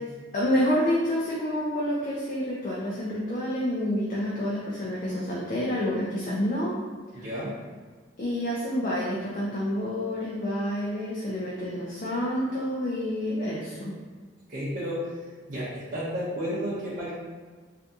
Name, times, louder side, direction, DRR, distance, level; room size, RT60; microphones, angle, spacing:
voice 1, 0.3-6.7 7.1-7.2 8.2-13.9, equal, 40° left, -6 dB, 0.4 m, -28 dB
voice 2, 7.1-7.5 14.5-17.1, equal, 45° right, -10 dB, 0.6 m, -32 dB
2.7 x 2.5 x 3.4 m, 1.5 s
head